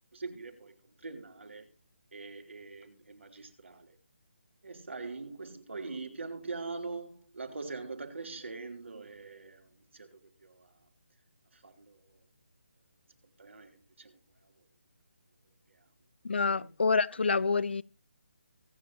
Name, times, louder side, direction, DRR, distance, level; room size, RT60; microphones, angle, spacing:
voice 1, 0.1-1.7 2.1-4.0 4.6-10.7 11.5-12.2 13.4-14.5 15.7-15.8 16.5-16.7 17.2-17.4, right 3 dB, 85° right, 3.3 m, -43 dB
voice 2, 16.2-17.8, left 4 dB, 65° left, 0.7 m, -27 dB
24.0 x 8.3 x 2.9 m
hypercardioid pair, 175°, 6 cm